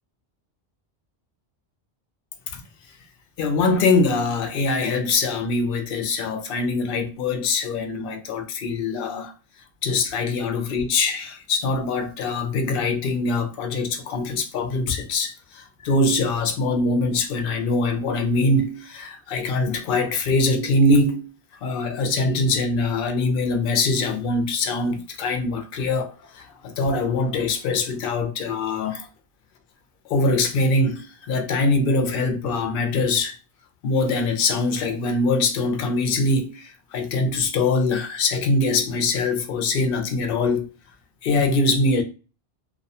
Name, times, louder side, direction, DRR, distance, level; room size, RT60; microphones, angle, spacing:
voice 1, 3.4-9.3 9.8-21.3 21.6-29.1 30.1-33.4 33.8-40.7 41.2-42.0, left 3 dB, 60° left, 0.7 m, -23 dB
2.6 x 2.2 x 2.7 m
omnidirectional pair, 1.1 m